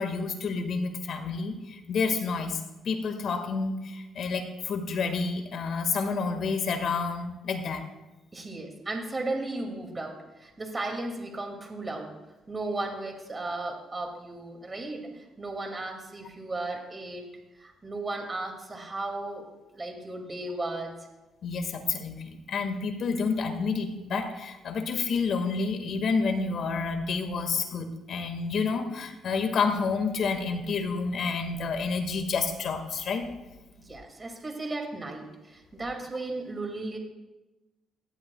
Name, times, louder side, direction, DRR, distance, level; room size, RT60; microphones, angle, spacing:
voice 1, 0.0-2.6 2.9-7.9 21.4-33.2, left 4 dB, 65° left, 5 dB, 1.8 m, -29 dB
voice 2, 8.3-12.1 12.5-15.1 15.4-17.2 17.6-19.4 19.7-20.9 33.8-37.0, right 2 dB, 25° right, 2 dB, 2.4 m, -35 dB
18.0 x 12.5 x 2.4 m, 1.1 s
cardioid pair, 90°, 0 cm